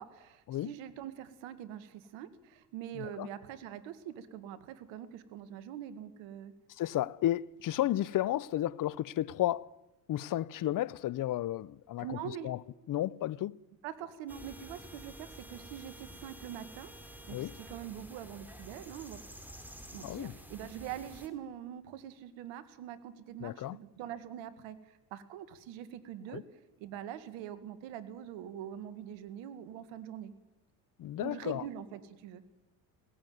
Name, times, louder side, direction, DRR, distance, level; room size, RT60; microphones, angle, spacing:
voice 1, 0.0-6.5 12.0-12.5 13.8-19.2 19.9-26.5 26.8-30.3 31.2-32.4, right 10 dB, 75° right, 1.9 m, -44 dB
voice 2, 3.0-3.3 6.8-9.7 10.1-12.2 12.4-12.6 12.9-13.6 17.3-17.5 20.0-20.3 23.4-23.8 26.3-26.4 31.0-31.6, left 13 dB, 45° left, 0.7 m, -33 dB
sound 1, 14.3-21.3, equal, 5° right, 3.5 m, -50 dB
17.5 x 15.5 x 9.4 m
supercardioid pair, 75°, 46 cm